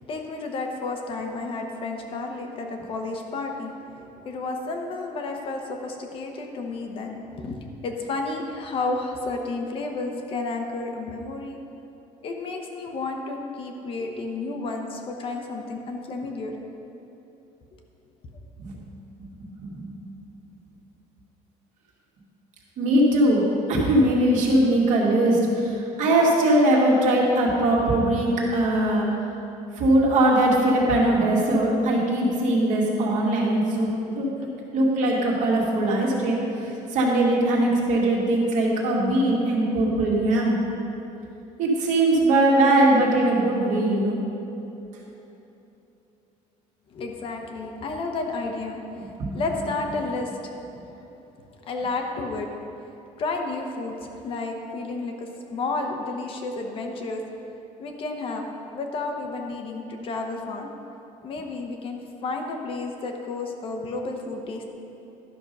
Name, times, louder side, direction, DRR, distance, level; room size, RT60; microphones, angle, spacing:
voice 1, 0.0-11.6 12.2-16.5 46.9-50.5 50.9-51.0 51.6-52.5 53.2-57.2 57.8-58.5 58.7-60.7 61.2-64.7, left 3 dB, 40° left, 3 dB, 0.9 m, -31 dB
voice 2, 22.8-23.4 23.7-29.1 29.8-33.9 34.2-34.3 34.7-40.6 41.6-44.2 49.2-49.4, right 1 dB, 60° right, -3 dB, 2.1 m, -21 dB
12.0 x 6.1 x 5.3 m, 3.0 s
cardioid pair, 170°, 14 cm